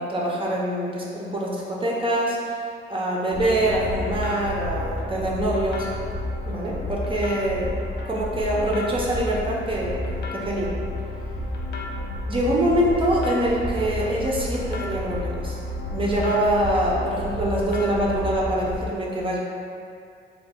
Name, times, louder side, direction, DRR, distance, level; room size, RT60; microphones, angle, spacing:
voice 1, 0.0-2.4 2.9-5.9 6.4-7.7 8.1-10.7 12.3-15.6 15.9-19.4, right 1 dB, 25° right, -4 dB, 0.6 m, -24 dB
sound 1, 3.3-18.8, left 1 dB, 55° left, 0.5 m, -31 dB
3.3 x 2.2 x 3.5 m, 2.3 s
cardioid pair, 90°, 20 cm